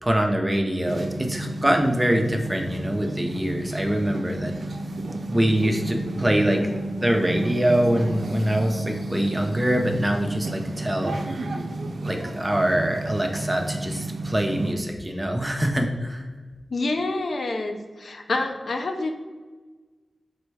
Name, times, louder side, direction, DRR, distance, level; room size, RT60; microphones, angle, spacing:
voice 1, 0.0-4.5 5.3-6.6 6.9-11.2 12.0-16.3, right 1 dB, 15° right, 3 dB, 0.5 m, -24 dB
sound 1, 0.8-14.7, right 2 dB, 70° right, 0.4 m, -32 dB
voice 2, 16.7-19.1, left 2 dB, 75° left, 5 dB, 0.4 m, -27 dB
4.2 x 2.2 x 4.6 m, 1.3 s
wide cardioid pair, 60°, 0 cm